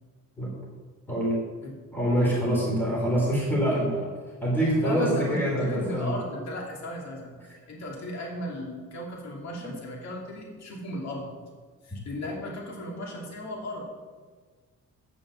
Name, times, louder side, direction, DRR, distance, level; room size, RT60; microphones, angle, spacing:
voice 1, 1.1-1.4 1.9-4.1 4.4-6.1, right 1 dB, 5° left, -4 dB, 4.0 m, -25 dB
voice 2, 4.8-7.3 7.7-11.3 11.8-13.9, left 1 dB, 60° left, -1 dB, 2.7 m, -35 dB
9.0 x 7.1 x 7.2 m, 1.5 s
cardioid pair, 90°, 30 cm